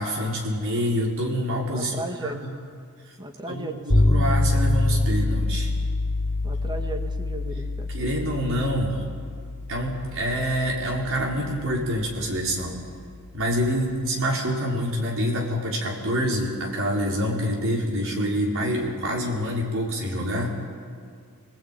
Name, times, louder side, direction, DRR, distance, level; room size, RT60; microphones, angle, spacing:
voice 1, 0.0-1.9 2.2-2.5 3.5-5.7 7.9-9.0 9.7-12.8 13.3-20.6, equal, 60° right, -2 dB, 5.0 m, -26 dB
voice 2, 1.7-2.5 3.2-4.2 6.4-7.9, right 2 dB, 20° right, 5 dB, 1.8 m, -35 dB
sound 1, 3.9-13.8, left 2 dB, 55° left, 3.3 m, -26 dB
27.5 x 19.0 x 9.2 m, 2.2 s
head